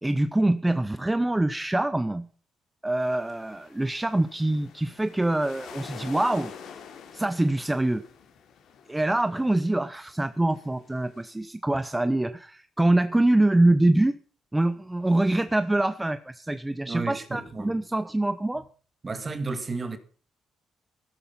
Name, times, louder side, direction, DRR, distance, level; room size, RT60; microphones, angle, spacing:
voice 1, 0.0-2.3 2.8-6.5 7.1-8.1 8.9-14.2 14.5-18.6, right 1 dB, 10° right, 0.7 m, -24 dB
sound 1, 3.0-11.3, left 7 dB, 75° left, 3.8 m, -47 dB
voice 2, 16.8-17.8 19.0-20.0, right 3 dB, 25° right, 2.0 m, -32 dB
16.0 x 12.5 x 5.7 m
cardioid pair, 140°, 0 cm